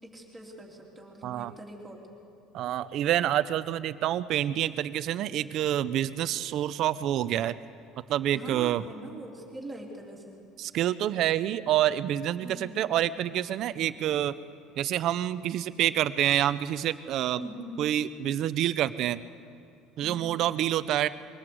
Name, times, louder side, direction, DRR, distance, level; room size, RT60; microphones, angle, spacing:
voice 1, 0.0-2.0 8.3-10.4 12.4-12.9 17.3-17.8, right 1 dB, 10° right, -2 dB, 3.4 m, -42 dB
voice 2, 1.2-1.5 2.5-7.6 8.1-8.8 10.6-14.3 14.8-17.4 17.8-19.2 20.0-21.1, right 12 dB, 55° right, 14 dB, 0.7 m, -27 dB
23.0 x 18.0 x 7.9 m, 2.4 s
cardioid pair, 120°, 0 cm